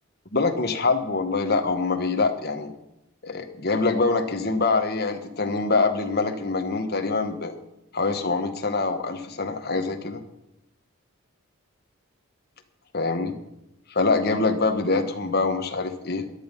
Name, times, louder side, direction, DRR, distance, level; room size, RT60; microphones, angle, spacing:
voice 1, 0.3-2.7 3.2-7.5 7.9-10.2 12.9-13.3 13.9-16.3, left 3 dB, 45° left, 5 dB, 1.4 m, -24 dB
17.5 x 11.0 x 5.4 m, 0.90 s
head